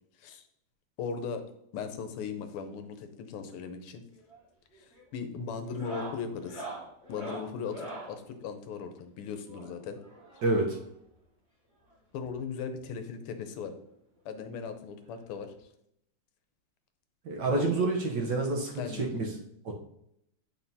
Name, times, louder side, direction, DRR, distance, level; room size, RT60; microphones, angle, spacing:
voice 1, 1.0-1.4 1.7-4.0 4.7-6.7 7.1-10.0 12.1-13.7 14.2-15.7 17.5-17.9 18.7-19.1, left 6 dB, 85° left, 8 dB, 1.6 m, -38 dB
sound 1, 4.1-4.4 4.7-5.1 5.6-8.2 9.5-10.9 11.9-12.0 12.2-12.3 12.8-12.9 14.2-14.3 15.6-15.7, right 2 dB, 20° right, 2.5 m, -43 dB
voice 2, 10.4-10.8 17.2-19.3 19.6-19.7, right 2 dB, 65° right, 1 dB, 1.3 m, -28 dB
8.9 x 4.3 x 2.7 m, 0.76 s
omnidirectional pair, 2.4 m